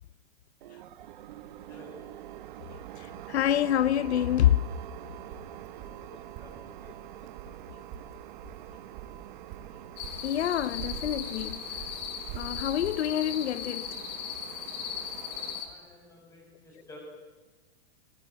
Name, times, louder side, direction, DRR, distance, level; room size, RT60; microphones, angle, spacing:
sound 1, 0.6-15.6, right 12 dB, 50° right, 1.3 m, -45 dB
voice 1, 3.0-4.7 10.2-11.8 12.3-14.0, left 11 dB, 85° left, 0.9 m, -27 dB
sound 2, 5.3-12.9, right 10 dB, 30° right, 1.9 m, -45 dB
voice 2, 5.7-6.9 7.3-7.4 15.6-17.0, left 2 dB, 10° left, 7.6 m, -53 dB
sound 3, 10.0-15.7, left 8 dB, 40° left, 4.0 m, -38 dB
26.5 x 21.0 x 8.7 m
supercardioid pair, 170°, 32 cm